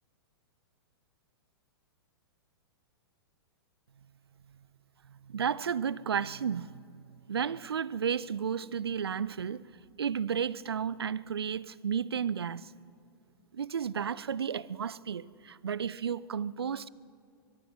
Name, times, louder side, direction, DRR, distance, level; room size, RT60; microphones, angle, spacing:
voice 1, 5.3-9.6 10.0-12.7 13.5-16.9, right 7 dB, 75° right, 0.5 m, -33 dB
23.5 x 23.0 x 6.2 m
figure-of-eight pair, 105°, 13 cm